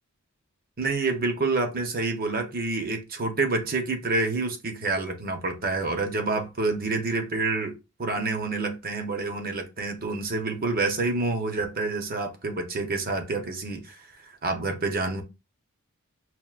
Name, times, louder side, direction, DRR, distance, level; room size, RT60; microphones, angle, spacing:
voice 1, 0.8-15.2, right 3 dB, 40° right, 0.8 m, -28 dB
5.8 x 2.6 x 2.4 m
head